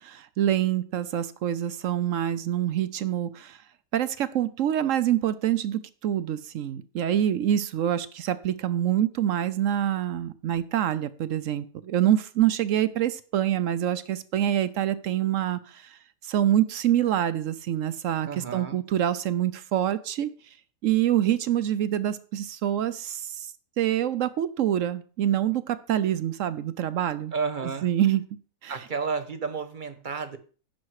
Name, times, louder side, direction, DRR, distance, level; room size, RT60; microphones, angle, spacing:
voice 1, 0.0-3.6 3.9-16.0 16.2-20.3 20.8-23.5 23.8-27.3 27.6-28.2 28.6-28.8, right 11 dB, 70° right, 15 dB, 1.0 m, -26 dB
voice 2, 18.3-18.8 27.3-27.9 28.7-30.4, right 5 dB, 40° right, 9 dB, 1.1 m, -31 dB
10.5 x 6.9 x 4.8 m, 0.39 s
omnidirectional pair, 1.5 m